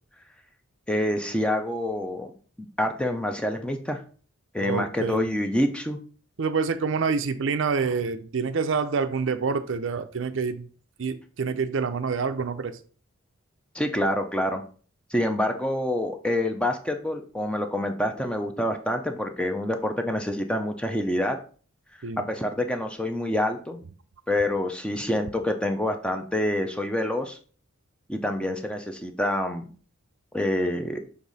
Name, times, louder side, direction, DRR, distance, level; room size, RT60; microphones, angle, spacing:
voice 1, 0.9-2.3 2.6-4.0 4.5-6.0 13.7-14.6 15.1-21.4 22.2-23.8 24.3-27.4 28.1-29.7 30.3-31.0, left 1 dB, 5° left, 5 dB, 0.5 m, -27 dB
voice 2, 4.6-5.4 6.4-10.7 11.0-12.8 22.0-22.3, right 5 dB, 60° right, 9 dB, 0.5 m, -27 dB
6.7 x 3.6 x 4.0 m, 0.41 s
head